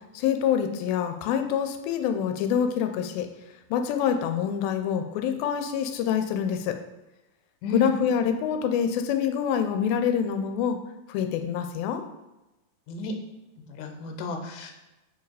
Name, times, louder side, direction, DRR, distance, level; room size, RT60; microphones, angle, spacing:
voice 1, 0.1-3.3 3.7-6.8 7.7-10.8 11.1-12.0, left 8 dB, 90° left, 7 dB, 2.4 m, -26 dB
voice 2, 12.9-13.2 13.7-14.7, left 3 dB, 70° left, 4 dB, 2.3 m, -31 dB
6.9 x 4.7 x 4.8 m, 1.0 s
omnidirectional pair, 4.1 m